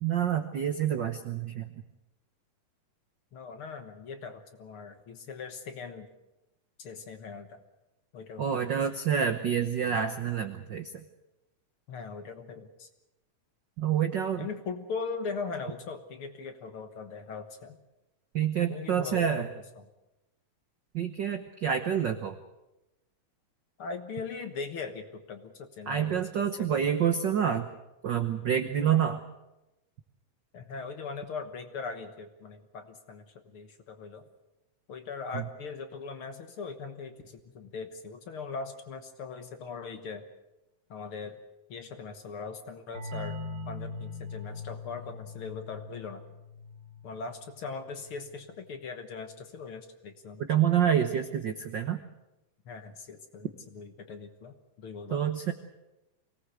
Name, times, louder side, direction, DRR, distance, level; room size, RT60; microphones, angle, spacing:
voice 1, 0.0-1.7 8.4-11.0 13.8-14.5 18.3-19.5 20.9-22.4 25.9-27.7 28.0-29.2 35.3-35.4 50.4-52.0 55.1-55.5, right 8 dB, 85° right, 8 dB, 1.0 m, -28 dB
voice 2, 3.3-6.1 6.8-7.6 8.1-8.7 11.9-12.9 14.4-17.8 18.7-19.5 19.8-19.9 23.8-26.9 30.5-34.2 34.9-40.2 40.9-41.4 41.7-43.4 43.7-46.2 47.0-50.7 52.7-55.2, left 4 dB, 55° left, 8 dB, 1.8 m, -40 dB
sound 1, 42.9-48.4, left 3 dB, 35° right, 2.5 m, -42 dB
24.0 x 18.0 x 8.1 m, 0.98 s
omnidirectional pair, 3.6 m